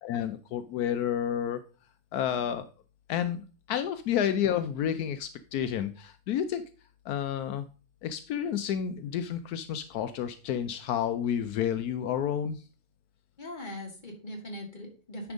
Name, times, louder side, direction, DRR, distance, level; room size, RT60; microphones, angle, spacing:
voice 1, 0.0-1.6 2.1-2.7 3.1-6.6 7.1-7.7 8.0-12.6, left 9 dB, 80° left, 10 dB, 1.1 m, -30 dB
voice 2, 13.4-15.3, left 1 dB, 30° left, 1 dB, 2.0 m, -41 dB
9.6 x 3.5 x 5.1 m, 0.36 s
omnidirectional pair, 1.6 m